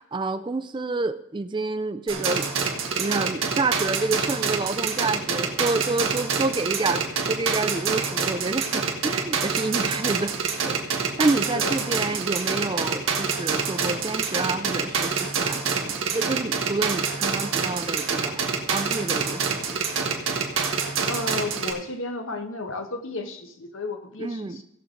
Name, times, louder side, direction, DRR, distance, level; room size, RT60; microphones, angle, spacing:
voice 1, 0.0-2.5 3.0-10.3 10.7-18.4 18.7-19.8 24.2-24.6, right 3 dB, 25° right, 12 dB, 0.4 m, -28 dB
sound 1, 2.1-21.7, right 5 dB, 85° right, 1.4 m, -27 dB
voice 2, 21.0-24.6, left 3 dB, 85° left, 6 dB, 1.2 m, -33 dB
17.0 x 6.6 x 3.8 m, 0.79 s
head